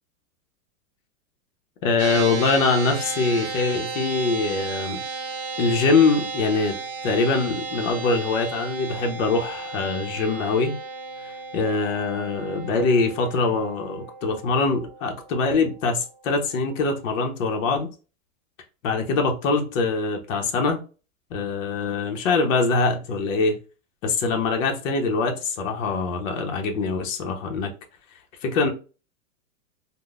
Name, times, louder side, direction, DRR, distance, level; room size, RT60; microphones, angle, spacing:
voice 1, 1.8-5.0 5.6-6.8 7.0-10.8 11.2-17.9 18.8-20.8 21.3-23.5 24.0-27.7 28.4-28.7, left 4 dB, 70° left, 3 dB, 0.9 m, -23 dB
sound 1, 2.0-15.5, right 4 dB, 25° right, 0.7 m, -34 dB
3.6 x 2.2 x 2.4 m, 0.34 s
supercardioid pair, 150°, 40 cm